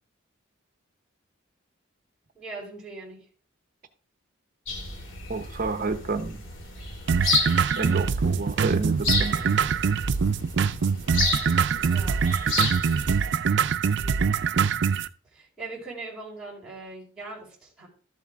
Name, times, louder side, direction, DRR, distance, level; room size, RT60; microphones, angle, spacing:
voice 1, 2.3-3.2 11.7-12.2 14.0-14.4 15.2-17.9, right 3 dB, ahead, -9 dB, 4.3 m, -41 dB
sound 1, 4.7-13.3, left 3 dB, 70° left, 2.9 m, -31 dB
voice 2, 5.3-6.4 7.8-9.5, right 3 dB, 45° right, 9 dB, 0.8 m, -30 dB
sound 2, 7.1-15.1, right 6 dB, 65° right, 0.5 m, -24 dB
13.0 x 7.3 x 3.6 m, 0.40 s
head